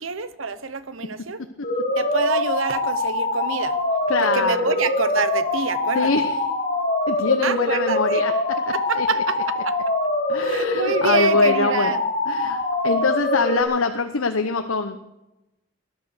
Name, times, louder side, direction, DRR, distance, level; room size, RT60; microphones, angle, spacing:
voice 1, 0.0-1.4 2.0-3.8 4.2-6.1 7.4-8.2 8.7-9.8 10.4-12.0 12.4-12.5, right 5 dB, 75° right, 14 dB, 1.0 m, -27 dB
sound 1, 1.6-13.6, left 2 dB, 35° left, 4.3 m, -24 dB
voice 2, 4.1-4.7 5.9-6.4 7.1-8.3 9.0-9.1 10.3-12.0 12.3-12.6 12.8-15.0, left 4 dB, 80° left, 7 dB, 0.9 m, -23 dB
20.0 x 11.0 x 6.5 m, 0.97 s
head